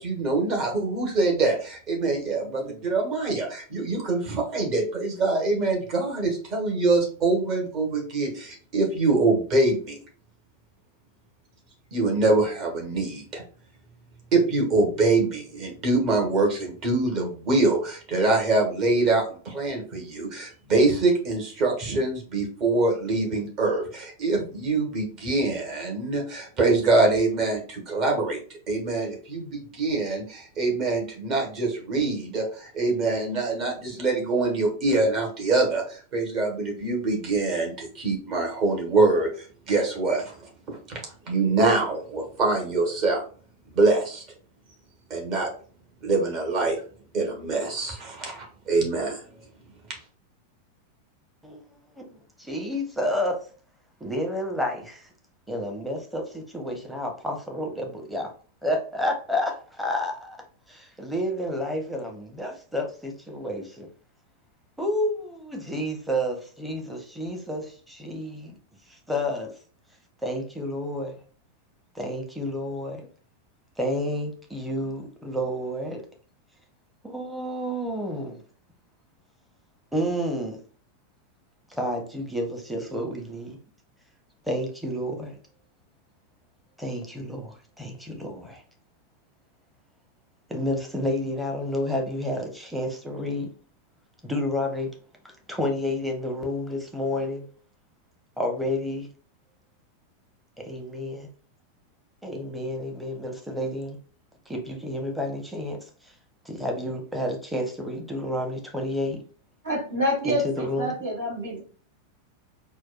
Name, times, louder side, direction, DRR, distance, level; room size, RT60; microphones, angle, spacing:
voice 1, 0.0-10.0 11.9-13.4 14.3-28.4 28.7-40.3 40.7-43.2 43.7-44.2 45.1-45.5 46.0-46.8 47.1-49.2, right 3 dB, 40° right, 1.2 m, -24 dB
voice 2, 52.5-53.3 54.0-54.8 55.5-56.2 56.5-58.3 58.6-59.5 59.8-60.1 61.0-63.6 64.8-67.6 68.0-68.5 69.1-69.5 70.2-71.1 72.0-73.0 73.8-76.0 77.0-78.3 79.9-80.6 81.8-83.5 84.5-85.3 86.8-87.4 87.8-88.4 90.5-93.5 94.2-94.9 95.5-97.4 98.4-99.0 100.7-101.2 102.2-103.9 104.5-105.8 106.5-109.2 110.2-110.9, left 1 dB, 5° right, 0.8 m, -29 dB
voice 3, 109.6-111.6, equal, 60° right, 1.5 m, -27 dB
4.3 x 2.2 x 2.3 m
figure-of-eight pair, 90°, 0 cm